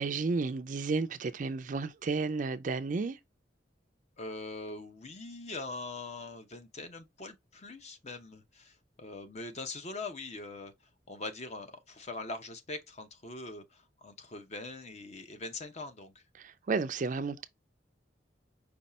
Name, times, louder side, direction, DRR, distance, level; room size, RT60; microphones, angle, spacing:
voice 1, 0.0-3.2 16.4-17.4, right 4 dB, 40° right, 0.4 m, -32 dB
voice 2, 4.2-10.7 11.1-16.2, left 3 dB, 35° left, 0.7 m, -42 dB
5.3 x 2.3 x 4.1 m
head